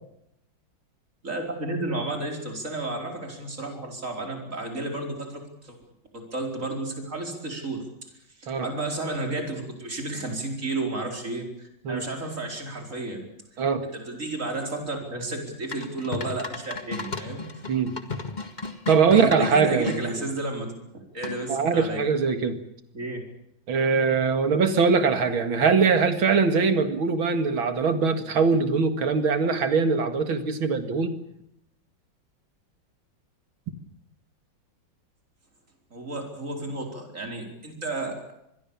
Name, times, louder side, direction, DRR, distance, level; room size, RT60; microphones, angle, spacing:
voice 1, 1.2-5.7 6.1-7.8 8.4-13.3 13.9-17.6 19.1-20.7 21.1-22.0 22.9-23.2 35.9-38.3, right 2 dB, 35° right, 2 dB, 5.0 m, -32 dB
sound 1, 15.7-20.0 21.2-21.6, left 4 dB, 25° left, 1.7 m, -34 dB
voice 2, 18.9-20.2 21.5-22.6 23.7-31.2, right 5 dB, 75° right, 8 dB, 2.7 m, -22 dB
26.0 x 21.5 x 7.2 m, 0.81 s
omnidirectional pair, 2.2 m